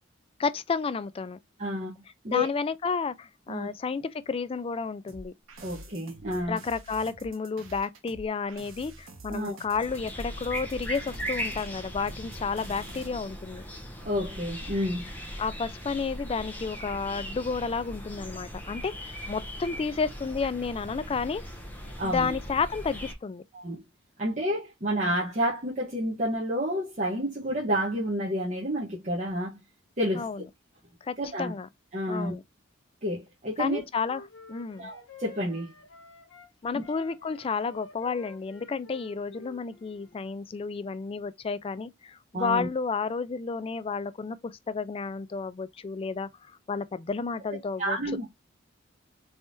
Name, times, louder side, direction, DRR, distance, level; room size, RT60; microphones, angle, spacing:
voice 1, 0.4-1.4 2.3-5.3 6.5-13.6 15.4-21.4 22.0-23.4 30.1-30.4 31.0-31.7 32.1-32.4 33.6-34.2 34.5-34.9 36.6-46.3 46.7-48.0, left 5 dB, 30° left, 0.3 m, -31 dB
voice 2, 1.6-2.5 3.5-3.7 5.6-6.6 9.3-9.6 14.0-15.0 22.0-22.3 23.5-23.8 24.2-29.6 30.0-30.3 31.2-31.5 31.9-32.3 33.0-33.8 34.8-35.7 36.7-36.8 42.3-42.7 47.8-48.3, equal, 35° right, 1.0 m, -30 dB
sound 1, 5.1-13.1, right 2 dB, 90° right, 1.2 m, -47 dB
sound 2, 9.8-23.1, equal, 10° left, 0.9 m, -39 dB
Wind instrument woodwind instrument, 33.6-36.5 36.8-40.2, left 3 dB, 90° left, 1.1 m, -50 dB
3.5 x 3.2 x 2.5 m
head